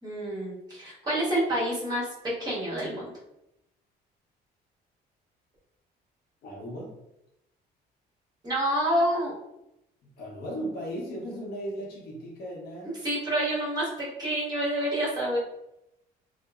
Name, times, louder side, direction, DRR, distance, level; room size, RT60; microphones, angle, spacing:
voice 1, 0.0-2.1 2.4-3.1 8.4-9.3 13.0-15.4, right 1 dB, 25° right, -7 dB, 1.3 m, -28 dB
voice 2, 6.4-6.9 10.0-13.0, equal, 65° left, -3 dB, 0.8 m, -36 dB
2.8 x 2.1 x 2.3 m, 0.86 s
cardioid pair, 110°, 17 cm